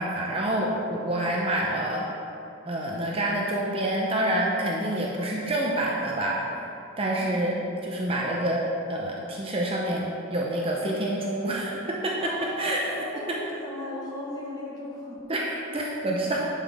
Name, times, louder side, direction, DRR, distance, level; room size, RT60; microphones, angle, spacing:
voice 1, 0.0-2.0 2.7-6.4 7.0-7.6 7.8-12.3 12.6-12.9 13.3-13.4 15.3-16.5, right 1 dB, 30° right, -3 dB, 0.7 m, -27 dB
voice 2, 7.2-7.5 12.2-15.2, left 1 dB, 20° left, -6 dB, 1.5 m, -36 dB
11.0 x 5.7 x 3.5 m, 2.8 s
head